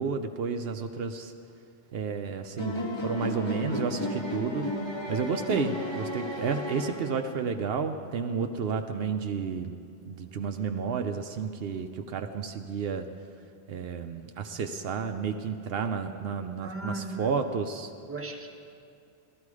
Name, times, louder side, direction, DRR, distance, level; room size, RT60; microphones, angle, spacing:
voice 1, 0.0-1.3 1.9-4.7 5.1-9.8 10.1-13.1 13.7-17.9, right 5 dB, 70° right, 6 dB, 0.8 m, -31 dB
sound 1, 2.6-7.5, left 1 dB, 25° left, 1.2 m, -33 dB
voice 2, 16.6-17.3 18.1-18.5, right 2 dB, 15° right, 2 dB, 1.0 m, -37 dB
15.5 x 13.0 x 4.8 m, 2.4 s
omnidirectional pair, 1.0 m